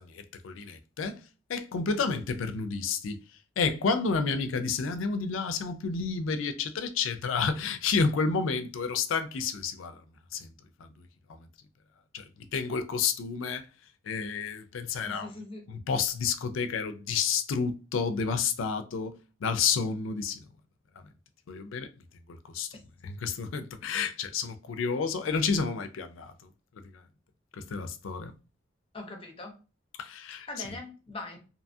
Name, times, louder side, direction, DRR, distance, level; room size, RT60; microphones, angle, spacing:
voice 1, 0.0-1.2 1.5-3.2 3.6-10.0 10.3-10.5 11.4-11.5 12.1-12.2 12.5-13.6 14.1-15.3 15.7-19.1 19.4-20.4 21.5-21.9 22.5-22.7 23.0-26.3 27.6-28.3 30.0-30.5, left 5 dB, 85° left, 0.4 m, -30 dB
voice 2, 15.0-15.6 28.9-29.6 30.5-31.5, left 2 dB, 30° left, 0.6 m, -41 dB
2.7 x 2.3 x 2.6 m
head